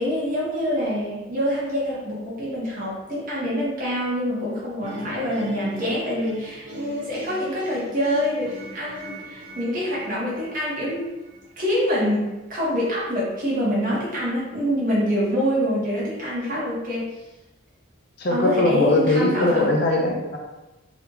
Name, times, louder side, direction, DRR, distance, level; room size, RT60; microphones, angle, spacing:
voice 1, 0.0-11.1 11.6-17.1 18.3-19.7, equal, 40° right, -7 dB, 1.4 m, -25 dB
sound 1, 4.8-11.9, equal, 75° right, 1.3 m, -40 dB
voice 2, 18.2-20.4, left 2 dB, 50° left, 0 dB, 0.6 m, -21 dB
4.0 x 3.4 x 3.0 m, 1.1 s
head